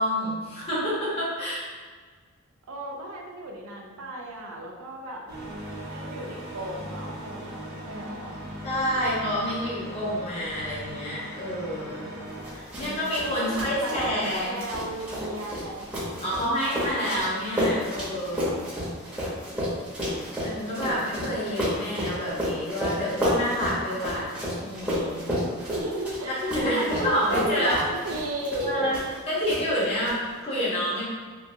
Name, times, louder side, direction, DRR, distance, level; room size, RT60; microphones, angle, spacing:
voice 1, 0.0-1.6 8.6-12.1 12.5-14.6 16.2-18.6 20.4-25.4 26.4-27.8 28.6-29.0 29.3-31.0, equal, 30° left, -9 dB, 1.0 m, -28 dB
voice 2, 2.7-5.2 5.8-8.4 12.8-16.5 25.6-28.9, right 1 dB, 80° right, 0 dB, 0.5 m, -34 dB
sound 1, 5.3-12.5, right 1 dB, 45° right, 0.7 m, -39 dB
sound 2, 12.4-29.2 29.5-30.1, equal, 5° right, 0.8 m, -31 dB
2.9 x 2.5 x 2.7 m, 1.5 s
head